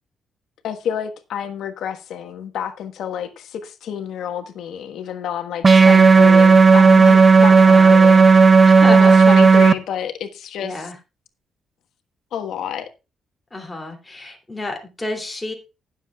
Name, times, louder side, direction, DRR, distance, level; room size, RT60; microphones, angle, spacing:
voice 1, 0.6-8.3 8.9-10.9 12.3-12.9, left 9 dB, 70° left, 1.4 m, -29 dB
sound 1, 5.6-9.7, right 4 dB, 25° right, 0.6 m, -10 dB
voice 2, 5.8-6.4 7.5-8.2 8.6-9.1 10.6-11.0 13.5-15.5, left 2 dB, 10° left, 2.8 m, -31 dB
19.5 x 7.3 x 2.4 m
cardioid pair, 140°, 0 cm